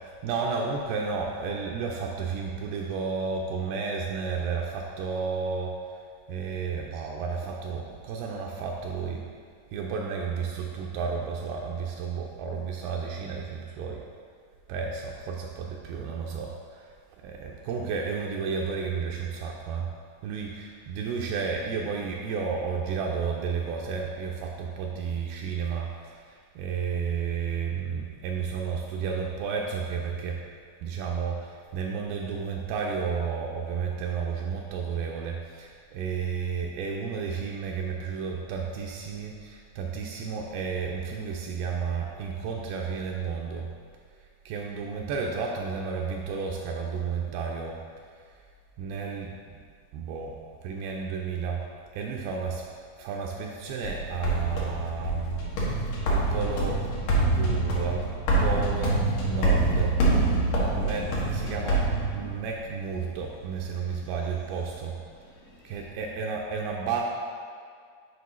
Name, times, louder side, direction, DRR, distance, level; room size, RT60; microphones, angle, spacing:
voice 1, 0.2-6.0 6.3-9.2 9.7-14.0 14.7-16.9 17.2-19.9 20.2-30.4 30.8-43.7 44.5-47.8 48.8-49.6 49.9-50.3 50.6-51.6 51.9-52.6 53.0-55.8 56.1-56.8 57.4-58.0 58.4-59.9 60.7-61.9 62.1-65.0 65.6-67.0, right 5 dB, 80° right, -1 dB, 2.3 m, -32 dB
sound 1, 53.8-62.6, right 2 dB, 70° left, 2.4 m, -26 dB
8.1 x 5.0 x 3.1 m, 2.1 s
omnidirectional pair, 4.5 m